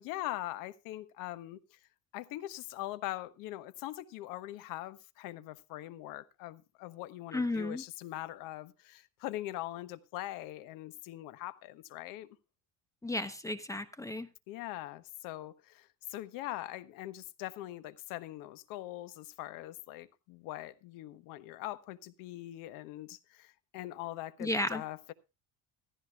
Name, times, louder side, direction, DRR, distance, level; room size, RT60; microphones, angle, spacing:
voice 1, 0.0-1.8 2.1-12.3 14.5-25.1, left 15 dB, 85° left, 1.3 m, -42 dB
voice 2, 7.3-7.8 13.0-14.3 24.4-24.8, left 2 dB, 10° left, 1.0 m, -33 dB
15.5 x 14.5 x 2.4 m
cardioid pair, 130°, 33 cm